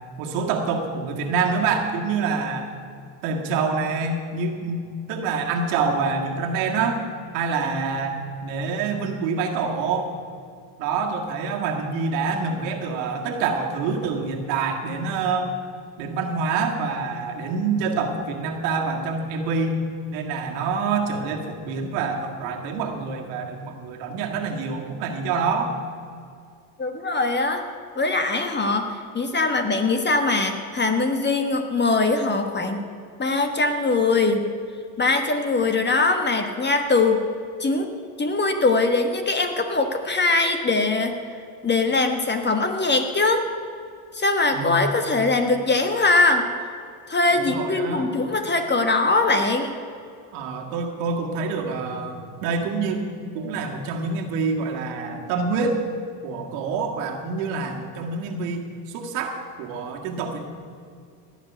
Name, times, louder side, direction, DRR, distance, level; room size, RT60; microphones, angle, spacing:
voice 1, 0.2-2.7 3.2-7.0 7.3-10.1 10.8-15.5 16.0-19.8 20.1-25.7 44.5-44.9 47.3-48.1 50.3-53.1 53.3-55.8 56.2-60.4, right 4 dB, 85° right, 2 dB, 2.0 m, -26 dB
voice 2, 26.8-27.7 27.9-32.8 33.2-34.4 35.0-37.2 37.6-37.9 38.2-41.1 41.6-43.5 44.1-46.5 47.1-49.7, left 3 dB, 20° left, 6 dB, 1.3 m, -22 dB
17.0 x 5.9 x 9.3 m, 2.3 s
supercardioid pair, 95°, 47 cm